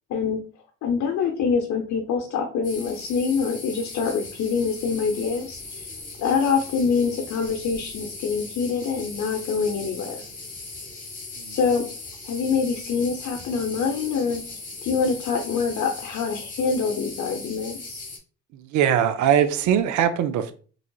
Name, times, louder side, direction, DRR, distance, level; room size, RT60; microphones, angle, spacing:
voice 1, 0.8-5.9 6.2-10.2 11.4-11.9 12.2-14.4 14.8-18.0, left 5 dB, 70° left, 0.6 m, -25 dB
sound 1, 2.6-18.2, left 3 dB, 25° left, 1.1 m, -39 dB
voice 2, 18.7-20.5, right 9 dB, 75° right, 0.5 m, -21 dB
3.8 x 3.2 x 2.2 m
cardioid pair, 90°, 30 cm